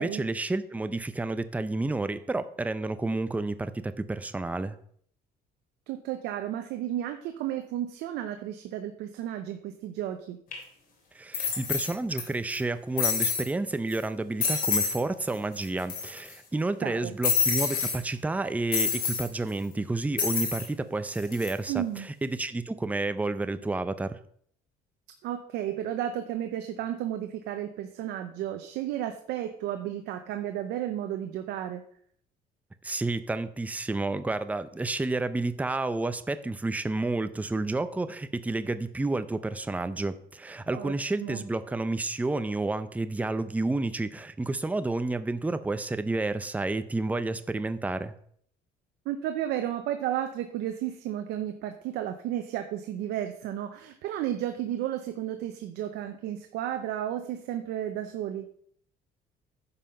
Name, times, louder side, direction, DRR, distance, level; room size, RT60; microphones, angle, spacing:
voice 1, 0.0-4.8 11.1-24.2 32.8-48.1, right 2 dB, 10° right, 12 dB, 0.6 m, -30 dB
voice 2, 5.9-10.4 16.8-17.1 21.7-22.1 25.2-31.8 40.7-40.9 41.2-41.4 49.1-58.5, right 11 dB, 85° right, 7 dB, 0.8 m, -33 dB
sound 1, 10.5-10.6 11.3-12.2 12.5-12.6 13.0-13.5 13.9-14.0 14.4-15.0 15.3-15.4 15.6-16.3 17.2-18.0 18.7-19.3 20.2-20.7 21.1-21.5, left 6 dB, 60° left, 3.2 m, -27 dB
9.8 x 5.7 x 5.2 m, 0.63 s
cardioid pair, 110°, 17 cm